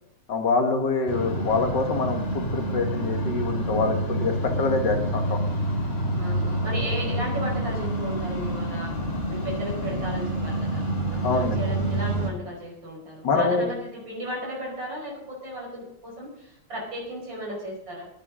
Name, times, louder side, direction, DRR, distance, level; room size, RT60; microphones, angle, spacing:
voice 1, 0.3-5.4 11.2-11.6 13.2-13.7, left 4 dB, 60° left, 4 dB, 2.3 m, -25 dB
sound 1, 1.1-12.3, right 1 dB, 30° left, 2.6 m, -28 dB
voice 2, 6.2-18.1, equal, 65° right, -2 dB, 5.6 m, -35 dB
18.5 x 10.5 x 3.8 m, 0.82 s
omnidirectional pair, 2.2 m